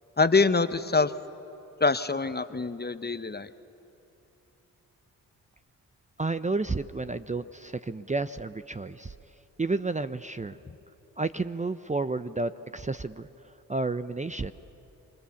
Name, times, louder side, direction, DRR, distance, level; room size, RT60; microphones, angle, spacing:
voice 1, 0.2-1.1 1.8-3.5, left 4 dB, 25° left, 12 dB, 1.0 m, -24 dB
voice 2, 6.2-9.1 9.6-10.6 11.2-13.3 13.7-14.5, right 3 dB, 20° right, 12 dB, 0.7 m, -31 dB
28.0 x 23.0 x 7.1 m, 2.9 s
supercardioid pair, 45°, 40 cm